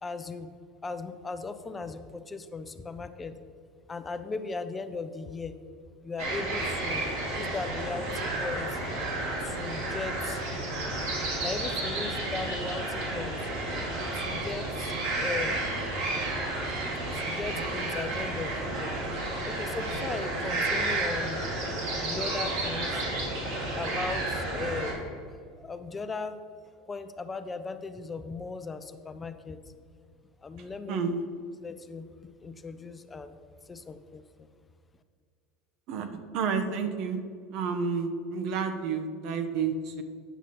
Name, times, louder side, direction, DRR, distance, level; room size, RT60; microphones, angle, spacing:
voice 1, 0.0-0.5 0.8-3.4 3.9-5.5 6.0-8.8 9.4-10.4 11.4-13.4 14.1-14.9 15.2-15.8 17.1-18.9 19.4-21.5 22.0-23.0 23.7-25.1 25.6-26.4 26.9-29.6 30.4-31.1 31.6-32.1 32.4-33.4 33.7-34.5, left 4 dB, 25° left, 10 dB, 0.6 m, -37 dB
sound 1, 6.2-24.9, right 2 dB, 80° right, 2.3 m, -31 dB
voice 2, 30.9-31.2 35.9-36.1 36.3-37.2 37.5-40.0, right 5 dB, 60° right, 7 dB, 0.9 m, -30 dB
9.1 x 6.0 x 4.2 m, 2.2 s
hypercardioid pair, 85°, 0 cm